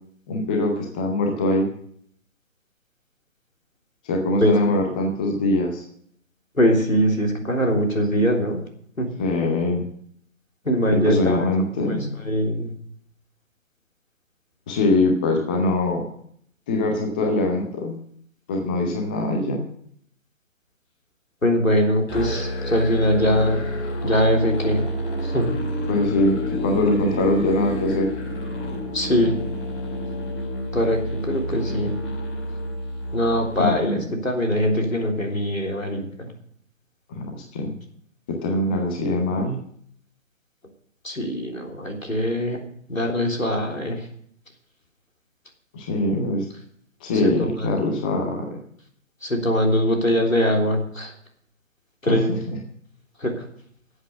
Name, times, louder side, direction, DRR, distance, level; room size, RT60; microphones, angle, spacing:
voice 1, 0.3-1.7 4.0-5.8 9.2-9.8 10.9-12.2 14.7-16.1 16.7-18.0 18.5-19.7 25.9-28.1 33.6-34.0 37.1-37.7 38.3-39.6 45.7-46.5 47.0-48.6 52.1-52.4, left 2 dB, 5° left, 2 dB, 0.5 m, -23 dB
voice 2, 6.6-8.6 9.0-9.1 10.7-11.5 11.9-12.0 12.3-12.7 21.4-23.6 24.0-24.8 25.2-25.5 28.9-29.4 30.7-31.9 33.1-36.3 41.0-42.6 42.9-44.1 47.2-47.5 49.2-51.1 52.0-52.3 53.2-53.4, equal, 85° left, 1 dB, 3.6 m, -22 dB
Musical instrument, 22.1-33.7, equal, 40° left, 5.1 m, -29 dB
12.5 x 7.9 x 8.2 m, 0.65 s
figure-of-eight pair, 130°, 39 cm